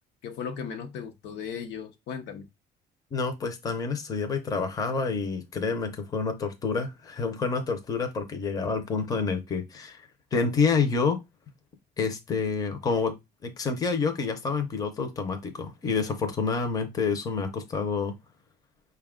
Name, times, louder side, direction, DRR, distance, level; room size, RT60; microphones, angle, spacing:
voice 1, 0.2-2.5, left 7 dB, 85° left, 0.8 m, -36 dB
voice 2, 3.1-10.0 10.3-11.2 12.0-13.1 13.4-18.1, left 4 dB, 20° left, 0.6 m, -28 dB
5.4 x 2.3 x 3.5 m
cardioid pair, 165°, 18 cm